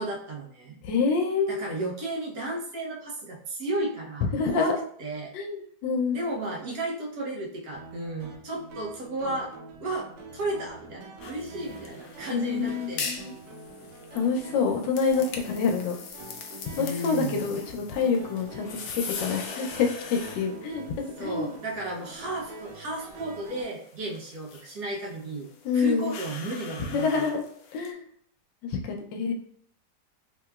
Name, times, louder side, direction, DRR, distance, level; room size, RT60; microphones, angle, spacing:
voice 1, 0.0-0.8 1.5-5.3 6.1-9.5 9.8-10.1 10.3-13.1 16.8-17.5 21.2-27.3, right 2 dB, 60° right, -2 dB, 1.1 m, -33 dB
voice 2, 0.8-1.6 4.3-4.8 5.3-6.2 12.3-13.3 14.1-15.9 16.8-18.9 19.2-21.5 25.6-26.1 26.9-27.4 27.7-28.0 28.6-29.3, left 5 dB, 90° left, 2 dB, 1.3 m, -27 dB
In the Pursuit, 7.7-23.6, right 3 dB, 85° right, 1.3 m, -45 dB
sound 1, 11.2-27.9, left 5 dB, 70° left, 0.9 m, -42 dB
3.4 x 2.9 x 2.3 m, 0.63 s
omnidirectional pair, 1.9 m